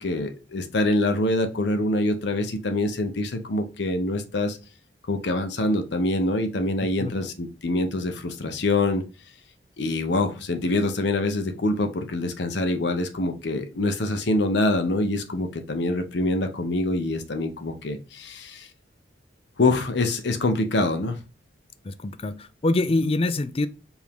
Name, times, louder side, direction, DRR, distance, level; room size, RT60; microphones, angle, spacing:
voice 1, 0.0-4.6 5.1-9.0 9.8-18.7 19.6-21.2, left 2 dB, 65° left, 0.6 m, -25 dB
voice 2, 21.8-23.7, left 2 dB, 30° left, 0.4 m, -25 dB
4.7 x 2.6 x 3.5 m
head